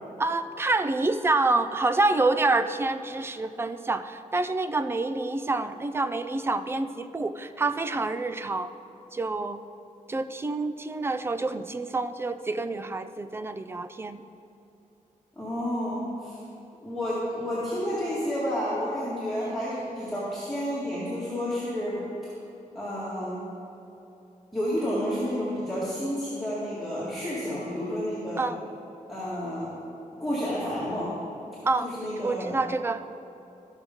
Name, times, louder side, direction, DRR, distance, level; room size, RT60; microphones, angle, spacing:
voice 1, 0.2-8.7 9.1-9.6 10.1-14.2 19.4-19.6 28.4-28.6 31.6-31.9 32.2-33.0, right 3 dB, 15° right, 11 dB, 0.3 m, -27 dB
voice 2, 15.4-16.4 16.8-22.0 22.7-23.4 24.5-28.4 29.1-29.7 30.2-31.1 31.8-32.6, equal, ahead, -10 dB, 1.8 m, -30 dB
13.5 x 6.3 x 5.2 m, 3.0 s
wide cardioid pair, 165°, 14 cm